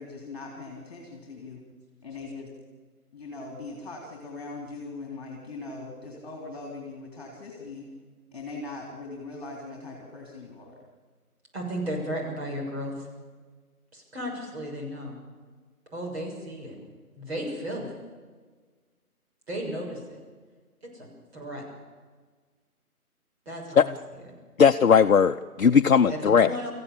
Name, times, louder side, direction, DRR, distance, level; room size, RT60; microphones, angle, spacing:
voice 1, 0.0-1.6 2.0-2.5 3.1-7.9 8.3-10.8 16.8-16.9, left 3 dB, 25° left, 0 dB, 3.5 m, -40 dB
voice 2, 11.5-13.1 13.9-15.2 15.9-16.7 17.2-17.9 19.5-20.2 20.9-21.1 21.3-21.6 23.4-23.9 26.1-26.7, equal, 45° right, -1 dB, 6.7 m, -34 dB
voice 3, 24.6-26.5, left 6 dB, 60° left, 7 dB, 0.7 m, -18 dB
24.0 x 15.0 x 8.5 m, 1.5 s
figure-of-eight pair, 165°, 45 cm